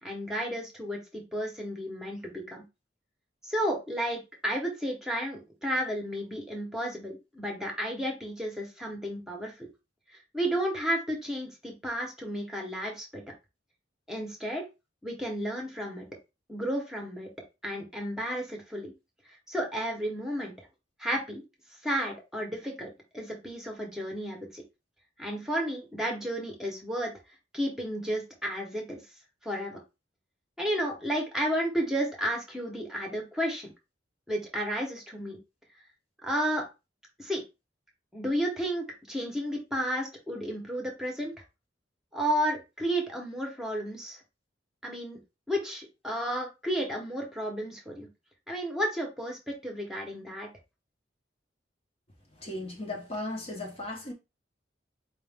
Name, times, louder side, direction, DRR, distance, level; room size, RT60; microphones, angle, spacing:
voice 1, 0.0-2.6 3.4-9.7 10.3-13.2 14.1-14.6 15.0-16.0 16.5-17.3 17.6-18.9 19.5-20.5 21.0-21.4 21.8-22.9 23.1-24.6 25.2-27.1 27.5-29.0 29.4-29.8 30.6-33.7 34.3-35.4 36.2-36.6 37.2-37.4 38.1-41.3 42.1-44.2 44.8-45.2 45.5-48.1 48.5-50.5, equal, 5° right, 0.9 m, -32 dB
voice 2, 52.4-54.1, left 2 dB, 35° left, 0.8 m, -36 dB
4.7 x 2.5 x 3.5 m
head